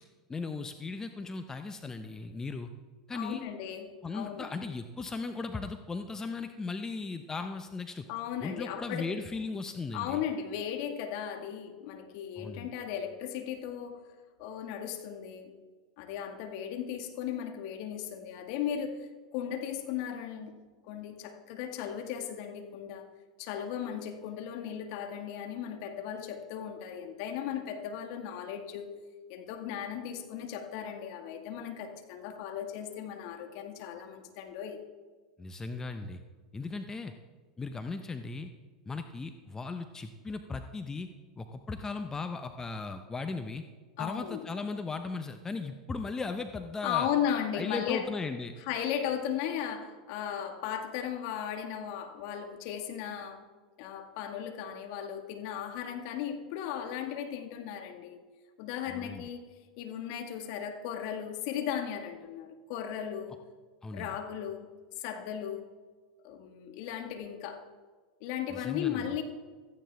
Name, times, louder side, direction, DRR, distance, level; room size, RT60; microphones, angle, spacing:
voice 1, 0.3-2.7 3.1-3.5 4.0-8.0 8.4-10.2 12.4-12.7 35.4-36.2 36.5-37.1 37.6-38.5 38.9-41.1 41.4-43.6 44.0-47.1 47.5-48.5 58.9-59.2 63.8-64.2 68.5-69.1, left 4 dB, 15° left, 7 dB, 0.8 m, -37 dB
voice 2, 3.1-4.5 8.1-9.1 9.9-14.0 14.4-15.5 16.0-20.6 20.9-23.1 23.4-28.9 29.3-34.8 44.0-44.5 46.8-48.1 48.7-53.4 53.8-58.2 58.6-59.5 59.8-63.4 63.9-64.7 65.0-65.7 66.2-67.6 68.2-69.2, left 9 dB, 55° left, 6 dB, 1.8 m, -36 dB
16.5 x 14.0 x 3.5 m, 1.4 s
hypercardioid pair, 95°, 3 cm